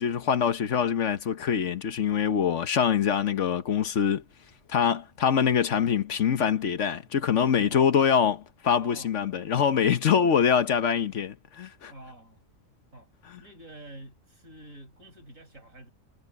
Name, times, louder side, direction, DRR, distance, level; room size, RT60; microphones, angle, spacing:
voice 1, 0.0-4.2 4.7-11.9 13.3-13.4, left 7 dB, 65° left, 1.3 m, -24 dB
voice 2, 7.7-8.1 8.8-9.3 11.9-12.4 12.9-13.1 13.4-15.9, right 1 dB, 85° right, 7.0 m, -48 dB
omnidirectional pair, 1.3 m